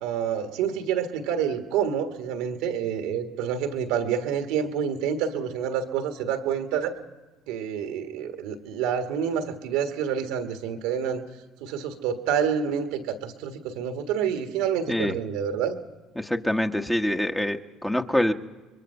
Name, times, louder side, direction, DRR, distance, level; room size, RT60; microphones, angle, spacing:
voice 1, 0.0-7.0 7.5-11.2 11.6-15.8, right 8 dB, 75° right, 7 dB, 1.5 m, -28 dB
voice 2, 16.2-18.3, left 1 dB, 10° left, 5 dB, 1.3 m, -25 dB
25.5 x 22.5 x 5.5 m, 1.2 s
hypercardioid pair, 65°, 0 cm